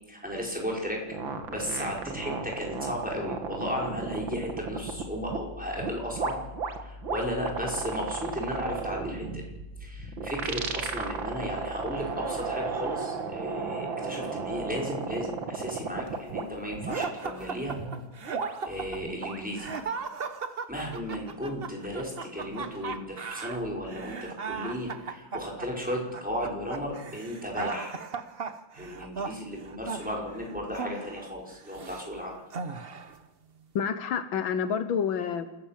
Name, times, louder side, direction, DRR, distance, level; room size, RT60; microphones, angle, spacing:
voice 1, 0.1-1.0 1.5-6.4 6.8-9.4 9.8-17.8 18.7-19.7 20.7-28.0 28.7-32.4, equal, 5° right, -2 dB, 5.2 m, -34 dB
sound 1, 1.1-5.4 5.7-16.4 16.7-17.1 17.7-19.9, right 5 dB, 70° right, 2.4 m, -34 dB
sound 2, 16.9-32.1 32.5-33.2, right 5 dB, 40° right, 1.0 m, -37 dB
voice 2, 33.8-35.5, left 7 dB, 75° left, 11 dB, 1.7 m, -28 dB
27.5 x 15.0 x 7.5 m, 1.0 s
omnidirectional pair, 2.2 m